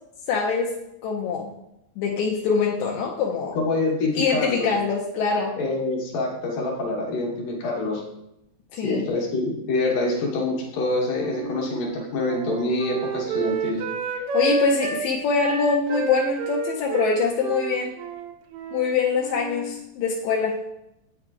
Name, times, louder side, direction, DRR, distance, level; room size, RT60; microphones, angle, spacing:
voice 1, 0.3-0.7 1.0-1.5 2.0-3.6 4.2-5.6 8.7-9.1 14.3-18.0 18.7-20.6, left 5 dB, 85° left, -2 dB, 2.0 m, -24 dB
voice 2, 3.6-4.8 5.6-8.0 8.8-13.8, left 2 dB, 70° left, -1 dB, 2.2 m, -26 dB
Wind instrument woodwind instrument, 11.2-15.1 15.4-18.9 19.2-19.7, right 4 dB, 85° right, 1.3 m, -29 dB
8.7 x 4.9 x 2.4 m, 0.85 s
omnidirectional pair, 3.3 m